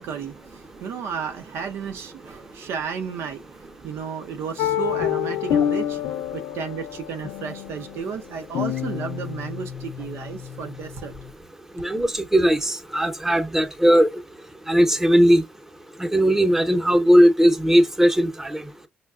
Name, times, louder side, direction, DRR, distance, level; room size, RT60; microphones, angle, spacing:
voice 1, 0.0-11.1, right 6 dB, 75° right, 0.6 m, -33 dB
sound 1, 4.6-11.3, left 10 dB, 80° left, 0.4 m, -28 dB
voice 2, 11.8-14.2 14.7-15.4 16.0-18.6, equal, 10° right, 0.8 m, -18 dB
5.4 x 2.2 x 2.4 m
supercardioid pair, 60°, 4 cm